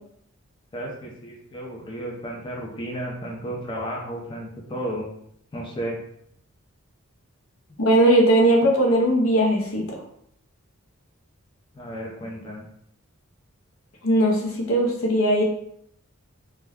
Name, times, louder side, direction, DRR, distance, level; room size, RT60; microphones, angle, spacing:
voice 1, 0.7-5.1 5.5-6.0 11.7-12.7, right 1 dB, 25° left, -2 dB, 0.5 m, -33 dB
voice 2, 7.8-10.0 14.0-15.4, right 1 dB, 75° left, 0 dB, 0.7 m, -19 dB
2.2 x 2.1 x 3.4 m, 0.69 s
head